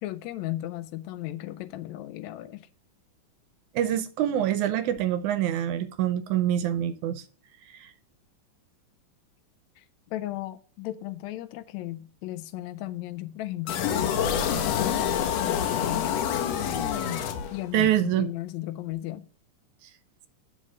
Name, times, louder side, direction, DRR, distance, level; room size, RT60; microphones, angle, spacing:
voice 1, 0.0-2.7 9.8-14.2 14.6-16.2 17.5-19.3, left 15 dB, 85° left, 1.6 m, -35 dB
voice 2, 3.8-7.2 7.7-7.9 17.7-18.3, right 11 dB, 80° right, 1.9 m, -25 dB
sound 1, 13.7-17.9, left 8 dB, 70° left, 1.7 m, -27 dB
7.8 x 6.5 x 5.3 m
omnidirectional pair, 3.8 m